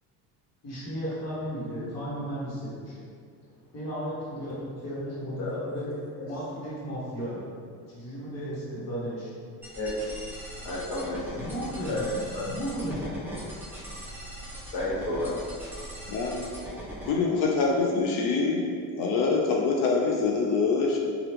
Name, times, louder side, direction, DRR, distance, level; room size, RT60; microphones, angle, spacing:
voice 1, 0.6-3.0 3.7-5.9 6.2-7.4 7.9-9.3 11.4-13.3, equal, 45° left, -8 dB, 1.2 m, -34 dB
sound 1, 9.6-17.1, equal, 5° right, 0.5 m, -40 dB
voice 2, 9.7-10.1 10.6-11.4 11.9-12.0 12.3-12.4 14.6-15.3, left 1 dB, 85° left, -7 dB, 1.2 m, -32 dB
voice 3, 16.1-16.4 17.1-18.7 18.9-21.0, left 4 dB, 60° left, 0 dB, 0.4 m, -25 dB
2.9 x 2.4 x 3.3 m, 2.2 s
cardioid pair, 130°, 38 cm